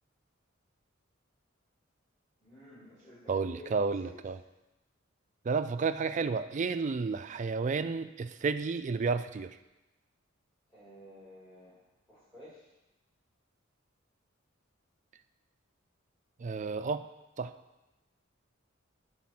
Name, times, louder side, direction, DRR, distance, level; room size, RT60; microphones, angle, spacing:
voice 1, 2.4-4.1 10.7-11.8 12.1-12.7, equal, 15° left, -12 dB, 3.0 m, -52 dB
voice 2, 3.3-4.4 5.5-9.5 16.4-17.0 17.4-17.5, right 4 dB, 40° right, 10 dB, 0.4 m, -31 dB
8.7 x 4.1 x 5.9 m, 1.0 s
head